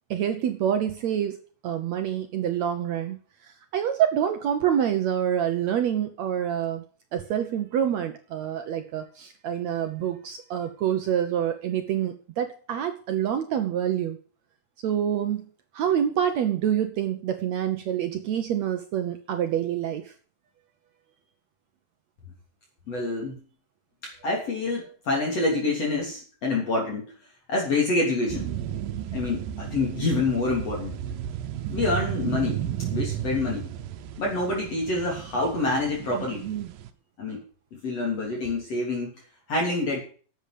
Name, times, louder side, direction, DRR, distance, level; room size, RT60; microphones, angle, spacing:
voice 1, 0.1-1.4 1.6-3.2 3.4-6.8 7.1-14.2 14.8-15.5 15.7-20.1 36.2-36.7, right 9 dB, 65° right, 7 dB, 2.0 m, -27 dB
voice 2, 22.9-23.4 24.0-27.1 27.5-28.5 29.1-31.0 31.7-33.7 34.2-36.5 37.2-37.4 37.7-39.1 39.5-40.0, left 2 dB, 50° left, -2 dB, 4.2 m, -27 dB
sound 1, 28.3-36.9, right 11 dB, 85° right, 2.7 m, -33 dB
10.5 x 8.1 x 8.4 m, 0.41 s
omnidirectional pair, 3.8 m